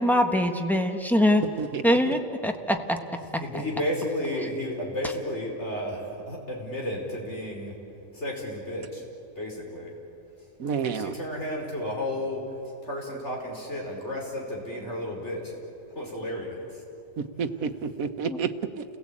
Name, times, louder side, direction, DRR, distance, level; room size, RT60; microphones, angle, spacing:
voice 1, 0.0-1.4 1.8-3.0 3.3-3.4 18.3-18.4, left 1 dB, ahead, 4 dB, 1.3 m, -23 dB
voice 2, 1.6-2.1 10.6-11.2 17.2-18.8, right 6 dB, 75° right, 9 dB, 1.4 m, -30 dB
voice 3, 3.4-7.8 8.1-9.0 9.4-9.9 10.8-12.4 12.8-15.5 15.9-16.8, left 1 dB, 50° left, -2 dB, 5.2 m, -32 dB
30.0 x 17.0 x 8.7 m, 2.7 s
omnidirectional pair, 1.5 m